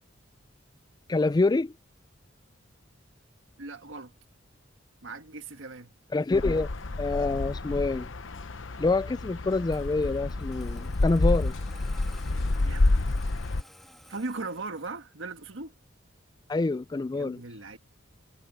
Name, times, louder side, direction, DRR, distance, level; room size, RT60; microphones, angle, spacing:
voice 1, 1.1-1.7 6.1-6.7 7.0-8.1 8.8-11.5 16.5-17.4, left 3 dB, 20° left, 0.3 m, -26 dB
voice 2, 3.6-4.1 5.0-5.9 12.6-13.1 14.1-15.7 17.1-17.8, right 3 dB, 80° right, 1.4 m, -38 dB
sound 1, 6.3-13.6, left 2 dB, 75° left, 0.9 m, -28 dB
Engine starting, 9.6-15.0, equal, ahead, 1.9 m, -53 dB
head